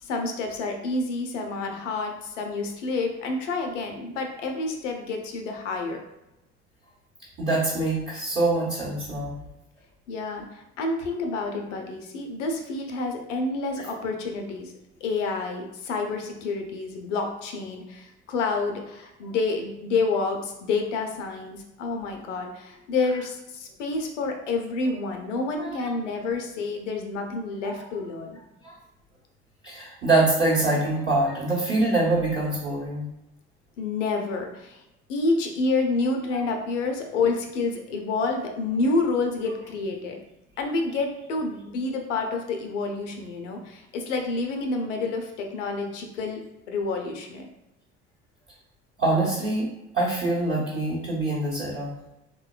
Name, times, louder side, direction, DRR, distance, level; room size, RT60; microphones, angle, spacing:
voice 1, 0.0-6.0 10.1-14.7 15.0-28.4 33.8-34.8 35.1-40.2 40.6-47.5, left 3 dB, 80° left, 3 dB, 0.5 m, -28 dB
voice 2, 7.4-9.3 25.6-25.8 27.6-27.7 28.6-28.8 29.6-33.1 36.3-36.4 49.0-51.9, right 2 dB, 30° right, -9 dB, 0.9 m, -24 dB
3.0 x 2.2 x 2.2 m, 0.91 s
hypercardioid pair, 60°, 36 cm